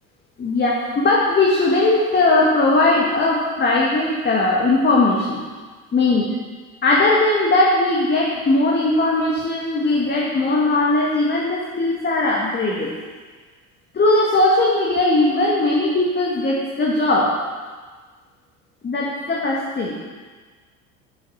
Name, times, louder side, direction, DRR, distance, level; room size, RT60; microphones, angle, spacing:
voice 1, 0.4-5.4 5.9-6.2 6.8-12.9 13.9-17.3 18.8-19.9, left 2 dB, 25° left, -4 dB, 2.0 m, -19 dB
9.4 x 8.2 x 5.8 m, 1.5 s
figure-of-eight pair, 75°, 44 cm